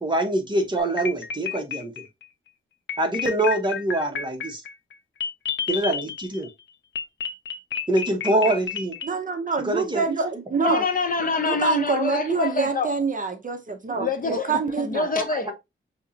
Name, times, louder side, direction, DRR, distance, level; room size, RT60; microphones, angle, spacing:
voice 1, 0.0-2.0 3.0-4.6 5.7-6.5 7.9-9.0 9.6-10.0 14.3-14.4 15.1-15.5, right 1 dB, 20° right, 1.0 m, -24 dB
sound 1, 0.8-2.2 2.9-6.5 6.9-9.1, left 6 dB, 60° left, 0.6 m, -31 dB
voice 2, 9.0-10.8 11.5-15.1, right 4 dB, 40° right, 0.6 m, -26 dB
voice 3, 10.6-13.0 13.9-15.5, left 4 dB, 40° left, 0.9 m, -26 dB
5.6 x 2.8 x 2.7 m
wide cardioid pair, 160°, 21 cm